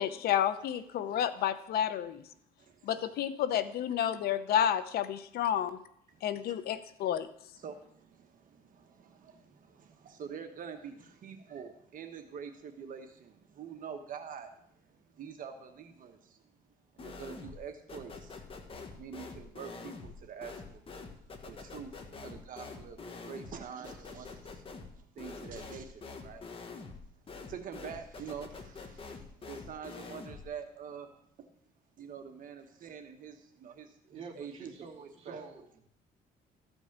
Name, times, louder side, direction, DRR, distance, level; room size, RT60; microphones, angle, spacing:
voice 1, 0.0-2.2 2.8-5.8 6.2-7.3, left 10 dB, 65° left, 12 dB, 0.8 m, -30 dB
voice 2, 2.6-3.0 6.1-6.2 7.6-16.4 16.9-18.4 18.9-20.8 21.4-24.6 24.9-26.6 27.5-31.5 32.0-35.5, right 7 dB, 55° right, 6 dB, 1.2 m, -46 dB
sound 1, 17.0-17.6 17.9-30.5, left 4 dB, 35° left, 1.4 m, -46 dB
voice 3, 34.1-35.8, right 5 dB, 35° right, -2 dB, 2.7 m, -47 dB
13.5 x 5.3 x 7.3 m, 0.70 s
cardioid pair, 110°, 17 cm